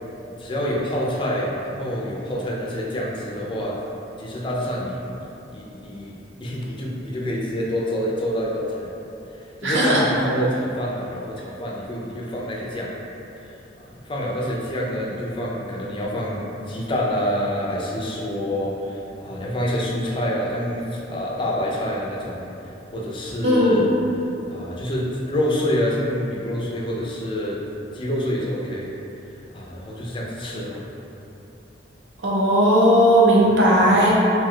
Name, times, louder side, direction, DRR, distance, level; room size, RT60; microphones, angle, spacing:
voice 1, 0.4-3.8 4.2-8.9 9.3-12.9 14.1-22.4 22.9-23.9 24.5-27.6 27.9-28.9 29.5-30.8 33.4-34.1, equal, 25° left, -3 dB, 0.4 m, -27 dB
voice 2, 9.6-10.0 23.4-23.8 32.2-34.1, equal, 75° right, -6 dB, 0.7 m, -16 dB
2.7 x 2.2 x 3.6 m, 2.9 s
head